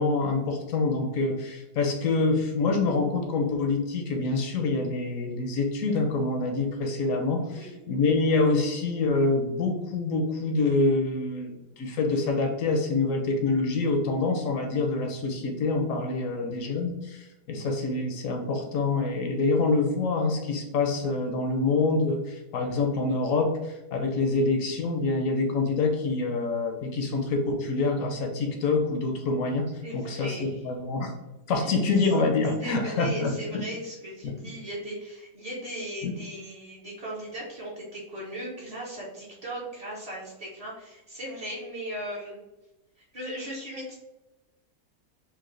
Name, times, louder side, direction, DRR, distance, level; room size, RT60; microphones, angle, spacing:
voice 1, 0.0-31.1 31.5-33.6 34.2-34.4 36.0-36.1, left 3 dB, 70° left, 4 dB, 0.8 m, -26 dB
voice 2, 7.4-7.9 16.2-16.5 29.8-30.6 31.6-31.8 32.6-42.4 43.0-43.9, right 1 dB, 50° right, -6 dB, 0.4 m, -38 dB
4.5 x 2.1 x 3.1 m, 0.98 s
omnidirectional pair, 1.8 m